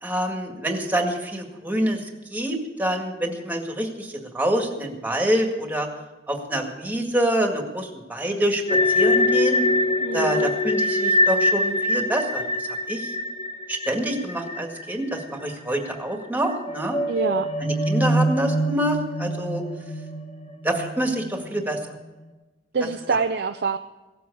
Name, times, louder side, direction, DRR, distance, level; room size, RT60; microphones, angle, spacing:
voice 1, 0.0-2.0 2.3-5.9 6.3-8.6 8.9-9.6 10.1-12.4 12.9-13.1 13.7-17.0 17.6-19.6 20.6-21.8, right 1 dB, 10° right, 3 dB, 1.9 m, -26 dB
sound 1, 8.7-15.5 15.8-15.9 16.5-21.8, left 1 dB, 35° left, 1.3 m, -24 dB
voice 2, 10.0-10.5 17.1-17.5 22.7-23.8, right 4 dB, 65° right, 7 dB, 0.6 m, -25 dB
17.0 x 7.8 x 8.4 m, 1.1 s
head